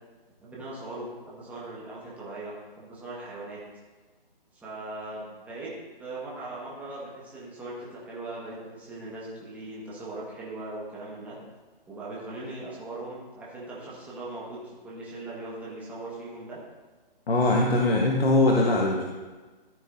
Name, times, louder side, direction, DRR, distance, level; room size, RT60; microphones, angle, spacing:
voice 1, 0.4-3.6 4.5-5.7 6.0-11.4 11.9-16.6, right 2 dB, 5° right, -7 dB, 1.5 m, -39 dB
voice 2, 17.3-19.0, left 2 dB, 80° left, -1 dB, 1.3 m, -21 dB
13.5 x 7.8 x 2.7 m, 1.3 s
hypercardioid pair, 155°, 29 cm